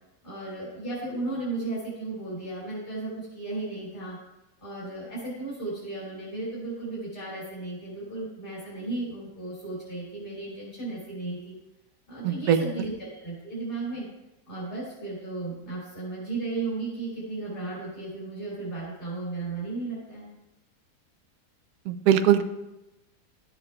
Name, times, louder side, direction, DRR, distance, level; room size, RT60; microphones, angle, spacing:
voice 1, 0.2-4.2 4.6-11.5 12.1-14.0 14.5-20.3, right 3 dB, 30° left, -8 dB, 3.3 m, -35 dB
voice 2, 12.2-12.6 21.8-22.4, right 9 dB, 70° right, 9 dB, 1.0 m, -21 dB
12.5 x 7.8 x 2.3 m, 0.95 s
omnidirectional pair, 1.8 m